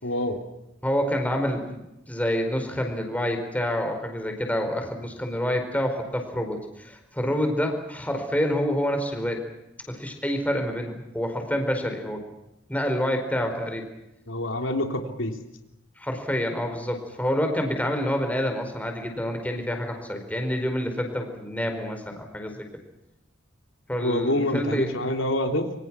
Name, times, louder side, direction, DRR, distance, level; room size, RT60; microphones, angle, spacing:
voice 1, 0.0-0.4 14.3-15.4 24.0-25.7, left 1 dB, 90° left, 4 dB, 3.5 m, -26 dB
voice 2, 0.8-9.4 9.9-12.2 12.7-13.8 16.0-22.7 23.9-24.9, equal, 10° left, 4 dB, 4.7 m, -27 dB
27.0 x 25.0 x 6.2 m, 0.89 s
head